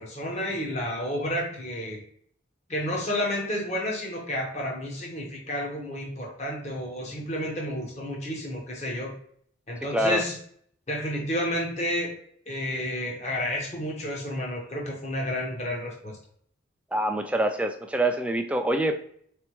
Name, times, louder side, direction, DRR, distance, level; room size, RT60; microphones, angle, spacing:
voice 1, 0.0-2.0 2.7-9.1 9.7-10.4 10.9-12.2 12.5-16.1, left 1 dB, 35° left, -1 dB, 1.0 m, -31 dB
voice 2, 9.9-10.2 16.9-19.0, right 1 dB, 5° right, 5 dB, 0.4 m, -25 dB
4.2 x 3.4 x 3.0 m, 0.62 s
head